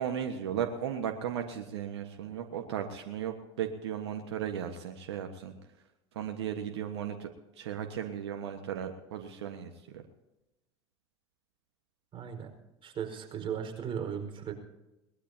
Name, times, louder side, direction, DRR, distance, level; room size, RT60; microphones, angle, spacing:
voice 1, 0.0-5.5 6.1-7.3 7.6-9.7, right 9 dB, 75° right, 6 dB, 1.4 m, -35 dB
voice 2, 12.1-12.5 12.8-14.5, right 8 dB, 35° right, 3 dB, 5.0 m, -36 dB
21.5 x 20.5 x 2.8 m, 0.98 s
hypercardioid pair, 80°, 14 cm